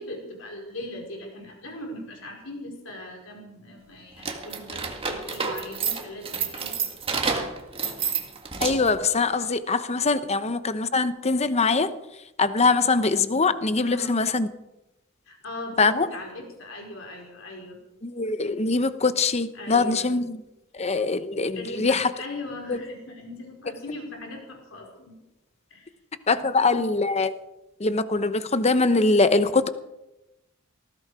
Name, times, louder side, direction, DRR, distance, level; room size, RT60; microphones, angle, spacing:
voice 1, 0.0-6.9 13.8-14.2 15.3-17.8 19.5-20.1 21.5-25.2 25.7-25.9 26.4-26.9, left 2 dB, 70° left, 0 dB, 4.6 m, -39 dB
sound 1, 4.2-9.0, right 5 dB, 25° right, 1.9 m, -29 dB
voice 2, 8.6-11.9 12.4-14.5 15.8-16.1 18.0-20.4 20.8-22.1 22.7-22.8 26.3-27.3 27.8-29.7, left 3 dB, 30° left, 12 dB, 0.9 m, -23 dB
19.0 x 15.5 x 4.9 m, 0.96 s
head